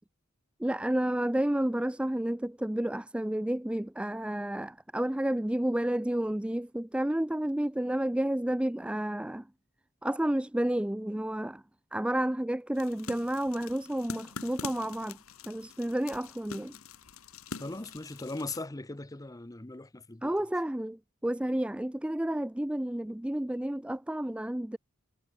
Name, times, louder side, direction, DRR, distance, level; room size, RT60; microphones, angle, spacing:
voice 1, 0.6-9.4 10.0-11.6 11.9-15.2 15.5-16.7 20.2-24.8, right 1 dB, 5° right, 0.4 m, -31 dB
sound 1, 12.7-18.6, left 5 dB, 70° left, 1.6 m, -44 dB
voice 2, 17.6-20.3, left 2 dB, 15° left, 0.8 m, -39 dB
head